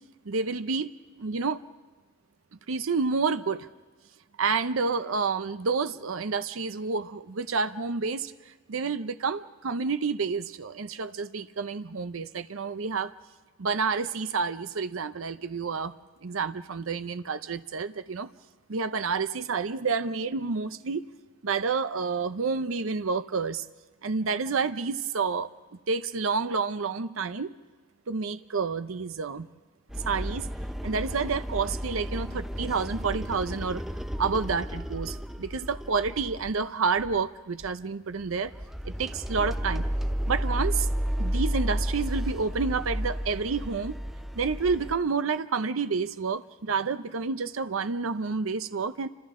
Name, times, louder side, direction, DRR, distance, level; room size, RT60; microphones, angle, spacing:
voice 1, 0.3-0.9 1.2-1.6 2.7-3.7 4.4-8.3 8.7-13.1 13.6-15.9 16.2-18.3 18.7-21.0 21.4-23.6 24.0-25.5 25.9-27.5 28.1-29.5 30.1-30.5 30.8-33.8 34.2-38.5 38.8-39.9 40.3-40.9 41.2-44.0 44.4-49.1, right 4 dB, 75° right, 11 dB, 0.7 m, -29 dB
sound 1, 29.9-36.6 37.0-37.3 37.6-37.7 38.2-44.9, equal, ahead, 0.6 m, -32 dB
29.5 x 26.0 x 3.7 m, 1.3 s
head